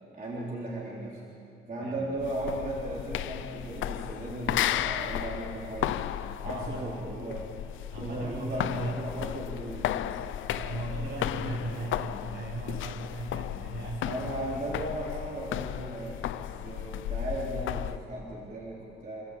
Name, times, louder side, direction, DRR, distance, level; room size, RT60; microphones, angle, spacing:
voice 1, 0.1-1.2 1.7-6.1 6.4-7.5 7.9-10.3 14.0-19.2, right 1 dB, 40° right, -5 dB, 3.8 m, -36 dB
voice 2, 1.8-2.1 6.4-6.9 7.9-9.0 10.5-14.2 14.5-14.7, right 2 dB, 65° right, -1 dB, 6.4 m, -37 dB
sound 1, 2.2-18.0, left 12 dB, 80° left, 0.7 m, -34 dB
28.0 x 14.0 x 8.6 m, 2.8 s
cardioid pair, 90°, 20 cm